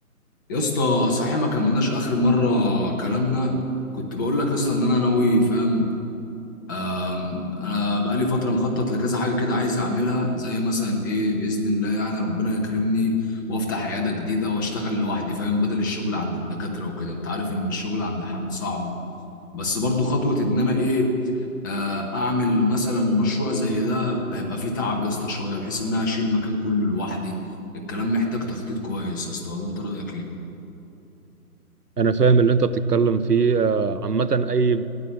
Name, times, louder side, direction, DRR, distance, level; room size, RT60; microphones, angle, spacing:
voice 1, 0.5-3.6 3.9-5.9 6.7-18.9 19.5-21.1 21.6-27.4 27.7-30.3, left 2 dB, 15° left, 0 dB, 0.9 m, -24 dB
voice 2, 32.0-34.8, right 5 dB, 90° right, 13 dB, 0.8 m, -20 dB
15.0 x 10.0 x 7.4 m, 2.8 s
figure-of-eight pair, 145°, 45 cm